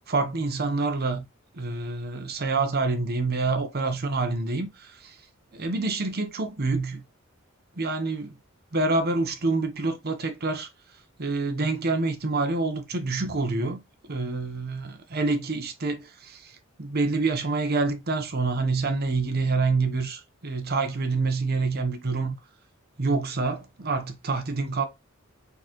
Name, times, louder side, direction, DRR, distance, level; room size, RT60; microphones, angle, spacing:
voice 1, 0.1-1.3 1.5-5.2 5.5-7.0 7.8-8.3 8.7-10.7 11.2-13.8 14.1-22.4 23.0-24.9, right 3 dB, 50° right, 0.8 m, -27 dB
4.3 x 4.0 x 2.9 m
head